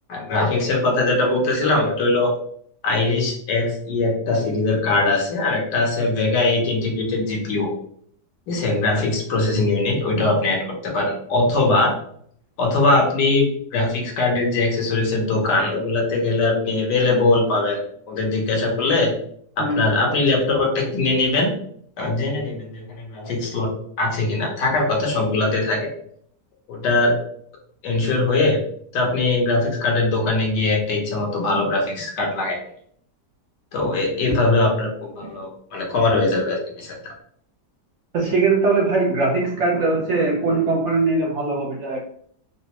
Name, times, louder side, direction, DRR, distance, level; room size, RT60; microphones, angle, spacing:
voice 1, 0.1-2.3 2.8-7.7 8.5-11.9 12.6-17.8 18.1-19.1 19.6-21.5 22.0-25.9 26.7-27.2 27.8-28.6 28.9-32.6 33.7-37.1, left 2 dB, 80° left, 0 dB, 1.5 m, -21 dB
voice 2, 38.1-42.0, right 3 dB, 65° right, -3 dB, 0.7 m, -21 dB
4.0 x 2.2 x 2.8 m, 0.63 s
omnidirectional pair, 1.8 m